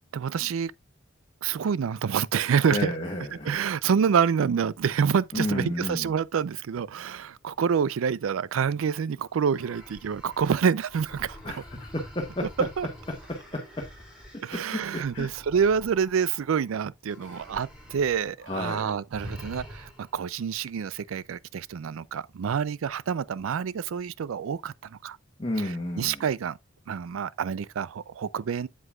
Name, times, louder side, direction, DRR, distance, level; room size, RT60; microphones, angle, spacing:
voice 1, 0.1-0.7 1.4-2.9 3.4-11.4 12.6-12.9 14.4-25.2 25.6-26.6 26.9-28.7, right 7 dB, 90° right, 0.4 m, -27 dB
voice 2, 2.7-3.6 5.3-6.1 11.4-12.5 13.3-13.8 14.5-15.3 18.5-19.0 25.4-26.2, left 1 dB, 25° left, 1.3 m, -32 dB
sound 1, 9.5-16.7 17.1-18.3 18.6-18.8 19.1-20.2, left 1 dB, 5° right, 3.4 m, -46 dB
7.9 x 7.7 x 2.3 m
head